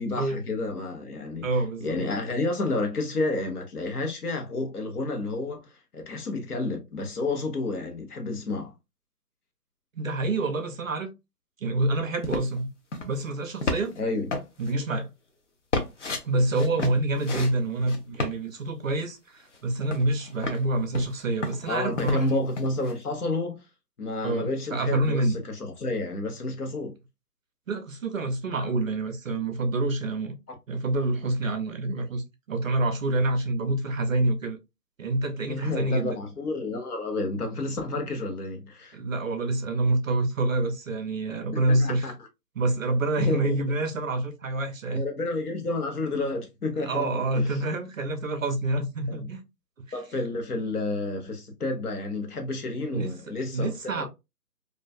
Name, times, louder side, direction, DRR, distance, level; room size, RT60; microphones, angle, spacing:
voice 1, 0.0-1.5 1.8-8.7 14.0-14.3 21.7-23.6 24.0-26.9 35.5-39.0 41.5-42.1 43.2-43.5 44.9-47.5 49.1-49.2 49.9-54.1, left 2 dB, 65° left, 1.0 m, -30 dB
voice 2, 1.4-2.1 9.9-11.1 11.6-12.7 13.0-13.9 14.6-15.1 16.2-22.4 24.2-25.4 27.7-30.3 30.7-34.6 35.0-36.1 38.9-42.1 42.6-45.1 46.8-49.4 52.9-53.1 53.5-54.1, right 2 dB, 55° right, 0.5 m, -27 dB
sound 1, 12.2-12.6 12.9-13.2 13.6-14.0 14.3-14.7 15.7-16.2 16.5-17.5 17.9-18.3 19.5-19.6 19.9-20.6 20.9-22.3 22.6-22.9, left 2 dB, 50° left, 0.5 m, -31 dB
2.4 x 2.2 x 2.4 m
hypercardioid pair, 160°, 49 cm